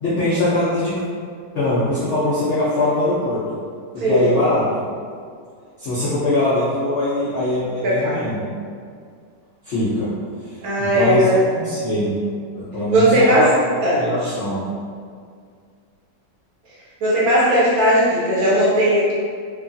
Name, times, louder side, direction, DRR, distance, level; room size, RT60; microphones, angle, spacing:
voice 1, 0.0-1.0 1.5-3.4 3.9-4.9 5.8-8.4 9.6-10.1 10.5-11.3 11.6-12.2 12.5-13.6 14.0-14.6, left 1 dB, 85° left, -10 dB, 0.6 m, -21 dB
voice 2, 4.0-4.3 7.8-8.4 10.6-11.4 12.9-13.5 13.8-14.3 17.0-19.1, equal, 70° right, -6 dB, 0.9 m, -17 dB
3.0 x 2.3 x 2.5 m, 2.1 s
omnidirectional pair, 2.0 m